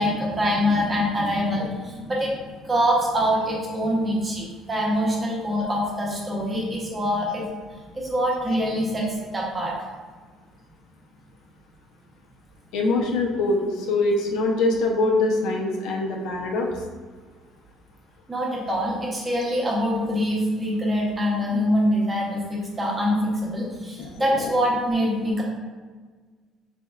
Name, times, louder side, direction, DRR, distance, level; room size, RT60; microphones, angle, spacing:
voice 1, 0.0-2.4 2.6-7.5 7.9-9.1 9.3-9.7 18.3-25.4, equal, 20° right, -3 dB, 0.7 m, -24 dB
voice 2, 12.7-16.7 24.0-24.5, left 2 dB, 75° left, 0 dB, 0.6 m, -24 dB
4.1 x 3.4 x 2.3 m, 1.5 s
cardioid pair, 170°, 0 cm